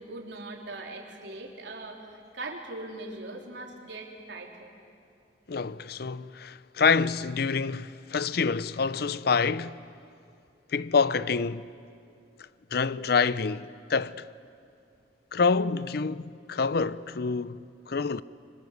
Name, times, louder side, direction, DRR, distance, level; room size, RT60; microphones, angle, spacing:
voice 1, 0.0-4.7, right 2 dB, 80° right, 3.6 m, -40 dB
voice 2, 5.5-9.8 10.7-11.7 12.7-14.3 15.3-18.2, left 5 dB, 60° left, 0.6 m, -27 dB
26.0 x 24.5 x 8.1 m
head